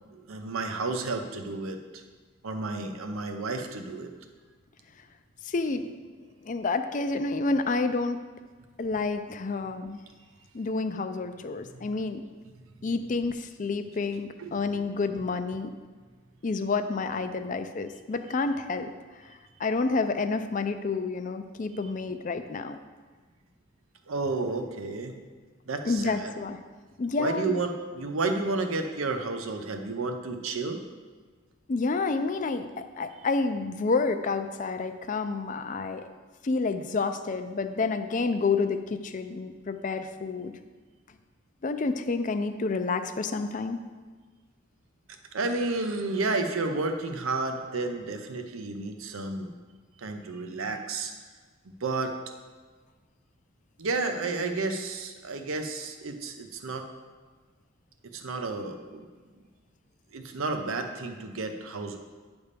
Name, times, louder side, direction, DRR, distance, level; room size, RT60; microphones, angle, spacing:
voice 1, 0.1-2.0 2.4-4.1 14.4-14.6 21.8-21.9 24.1-25.2 25.7-26.3 27.2-30.8 45.3-49.5 50.0-51.1 51.8-52.1 53.8-56.9 58.1-59.1 60.1-62.0, right 3 dB, 80° right, 5 dB, 0.7 m, -31 dB
voice 2, 5.5-5.8 6.5-8.2 8.8-10.0 10.5-12.2 12.8-15.7 16.4-18.9 19.6-22.8 25.9-26.6 27.0-27.5 31.7-36.0 36.4-40.5 41.6-43.8, left 3 dB, 35° left, 9 dB, 0.4 m, -29 dB
9.7 x 3.5 x 6.6 m, 1.4 s
head